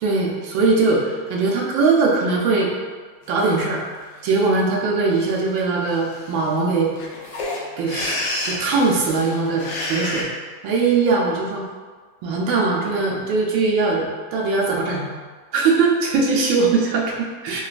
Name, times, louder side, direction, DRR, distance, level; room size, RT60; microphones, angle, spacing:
voice 1, 0.0-2.7 3.3-3.8 4.2-6.9 7.8-8.2 8.5-10.3 10.6-11.6 12.2-15.1 15.5-17.6, right 4 dB, 90° right, -2 dB, 1.4 m, -20 dB
sound 1, 3.4-3.5 4.0-4.4 5.1-5.3 5.6-5.7 5.8-10.2, left 1 dB, 80° left, 0.7 m, -30 dB
3.9 x 2.2 x 2.4 m, 1.5 s
omnidirectional pair, 2.0 m